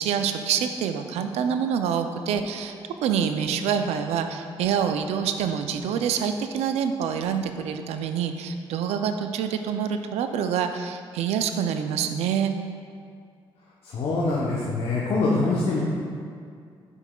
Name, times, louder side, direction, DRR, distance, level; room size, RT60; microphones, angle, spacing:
voice 1, 0.0-2.8 3.0-12.5, right 7 dB, 85° right, 7 dB, 0.4 m, -26 dB
voice 2, 13.8-15.8, left 3 dB, 70° left, -5 dB, 0.9 m, -24 dB
7.1 x 6.8 x 2.3 m, 2.3 s
cardioid pair, 70°, 11 cm